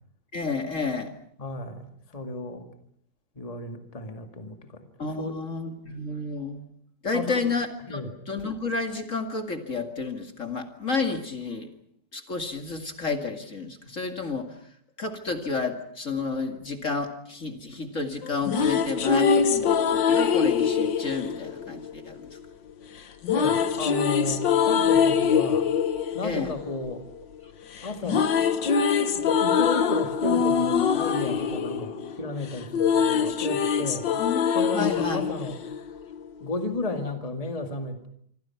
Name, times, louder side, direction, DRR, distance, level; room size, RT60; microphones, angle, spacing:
voice 1, 0.3-1.1 5.0-6.6 7.0-11.7 12.1-14.6 15.0-22.3 26.2-26.5 34.1-35.2, left 4 dB, 45° left, 5 dB, 2.5 m, -31 dB
voice 2, 1.4-2.7 3.4-4.9 5.2-5.4 7.1-7.4 7.9-8.1 23.3-25.7 26.1-27.0 27.8-28.3 29.1-34.1 34.5-35.6 36.4-38.1, left 2 dB, 20° left, 5 dB, 2.1 m, -33 dB
sound 1, 18.2-22.4 23.2-27.5 27.8-36.3, left 7 dB, 80° left, 2.0 m, -24 dB
26.0 x 25.5 x 5.9 m, 0.65 s
omnidirectional pair, 2.0 m